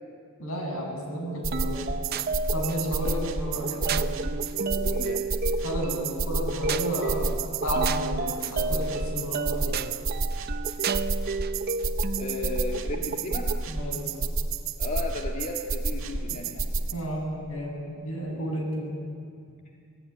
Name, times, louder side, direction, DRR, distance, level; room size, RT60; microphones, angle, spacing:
voice 1, 0.4-1.8 2.5-4.1 5.6-9.7 13.7-14.2 16.2-16.4 16.9-19.0, equal, 80° left, 0 dB, 8.0 m, -32 dB
sound 1, 1.4-16.9, right 3 dB, 70° right, 1.8 m, -30 dB
sound 2, 1.5-13.7, right 4 dB, 45° right, 0.6 m, -32 dB
voice 2, 4.8-5.2 12.2-13.5 14.8-16.6, left 1 dB, 40° left, -1 dB, 1.9 m, -34 dB
26.5 x 18.0 x 9.2 m, 2.3 s
head